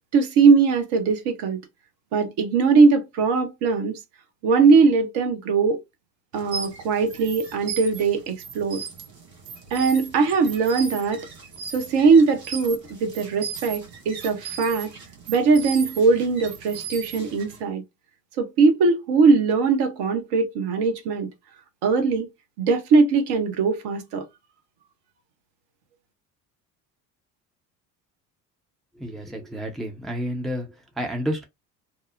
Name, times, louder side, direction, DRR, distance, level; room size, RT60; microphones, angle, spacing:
voice 1, 0.1-1.6 2.1-4.0 4.4-5.8 6.3-8.8 9.7-11.3 11.7-14.9 15.3-17.8 18.4-21.3 21.8-22.3 22.6-24.2, right 4 dB, 55° right, 0.9 m, -20 dB
sound 1, 6.3-17.6, right 6 dB, 85° right, 0.9 m, -37 dB
voice 2, 28.9-31.4, equal, ahead, 0.6 m, -30 dB
2.8 x 2.0 x 2.4 m
figure-of-eight pair, 60°, 48 cm